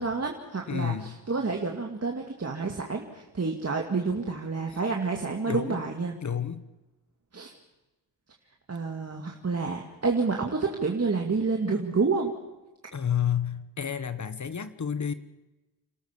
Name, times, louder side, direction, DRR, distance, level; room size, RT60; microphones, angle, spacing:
voice 1, 0.0-6.2 7.3-7.5 8.7-12.3, right 4 dB, 35° right, 2.2 m, -29 dB
voice 2, 0.7-1.1 5.5-5.8 6.2-6.6 12.9-15.1, left 8 dB, 40° left, 1.3 m, -30 dB
29.0 x 13.0 x 7.0 m
supercardioid pair, 55°, 44 cm